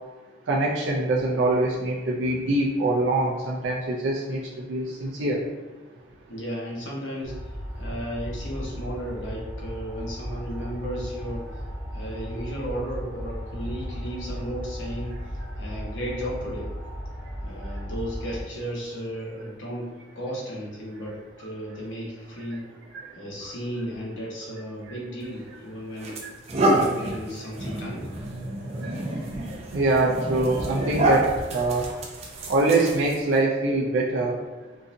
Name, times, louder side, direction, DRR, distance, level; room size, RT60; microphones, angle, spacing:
voice 1, 0.5-4.4 4.7-5.4 28.8-28.9 29.7-31.8 32.5-34.3, right 2 dB, 85° right, -4 dB, 0.5 m, -24 dB
voice 2, 6.3-11.4 11.9-15.1 15.6-16.7 17.4-19.9 20.1-22.6 23.2-26.2 26.6-28.1, equal, 80° left, -4 dB, 1.0 m, -34 dB
sound 1, 7.2-18.4, equal, 25° left, 0.9 m, -35 dB
sound 2, 25.2-25.4 26.0-33.4, right 1 dB, 35° right, 0.5 m, -28 dB
3.8 x 2.7 x 2.5 m, 1.2 s
head